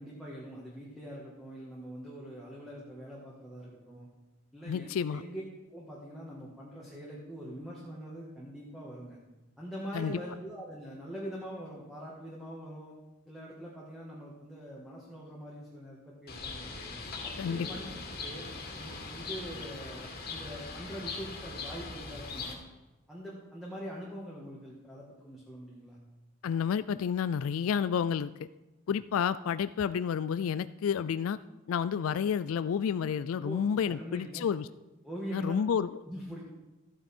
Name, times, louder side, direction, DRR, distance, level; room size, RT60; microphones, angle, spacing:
voice 1, 0.0-4.1 4.5-5.4 5.7-9.2 9.6-12.9 13.3-16.7 17.2-17.8 18.2-18.5 18.8-22.6 23.1-26.0 33.4-34.5 35.0-35.5 36.0-36.4, equal, ahead, -5 dB, 1.8 m, -43 dB
voice 2, 4.7-5.2 9.9-10.1 17.4-17.7 26.4-28.3 28.9-31.4 31.7-34.7 35.3-35.9, left 7 dB, 75° left, 15 dB, 0.3 m, -30 dB
Bird, 16.3-22.5, left 4 dB, 45° left, 2.3 m, -40 dB
14.0 x 9.0 x 4.4 m, 1.1 s
head